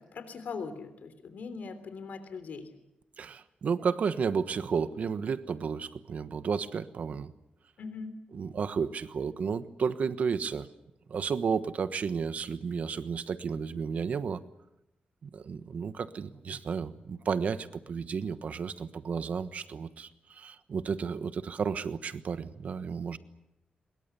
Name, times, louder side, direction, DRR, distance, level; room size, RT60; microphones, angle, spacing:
voice 1, 0.0-2.7 7.8-8.1, left 5 dB, 70° left, 10 dB, 3.3 m, -40 dB
voice 2, 3.2-7.3 8.3-10.7 11.1-14.4 15.2-23.2, right 6 dB, 60° right, 12 dB, 1.2 m, -32 dB
23.5 x 22.0 x 8.4 m, 0.88 s
wide cardioid pair, 155°, 3 cm